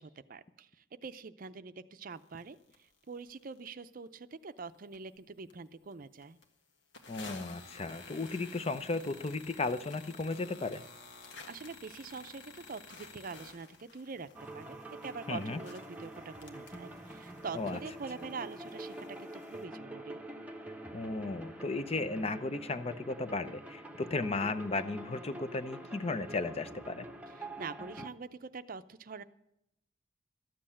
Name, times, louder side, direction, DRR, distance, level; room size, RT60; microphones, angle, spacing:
voice 1, 0.0-6.4 11.5-14.3 14.5-14.8 15.0-20.2 27.4-29.2, right 4 dB, 50° right, 12 dB, 0.5 m, -44 dB
sound 1, 2.4-2.5 2.7-2.8 3.3-3.7 4.2-4.3 4.6-5.2 5.5-5.6 5.9-6.0 6.2-6.4 6.9-19.6, left 4 dB, 80° left, 1.6 m, -53 dB
voice 2, 7.1-10.8 15.3-15.6 17.5-17.8 20.9-27.1, left 3 dB, 35° left, 13 dB, 0.6 m, -35 dB
sound 2, 14.3-28.1, right 1 dB, 10° right, 0.8 m, -46 dB
13.0 x 7.8 x 8.5 m, 0.80 s
head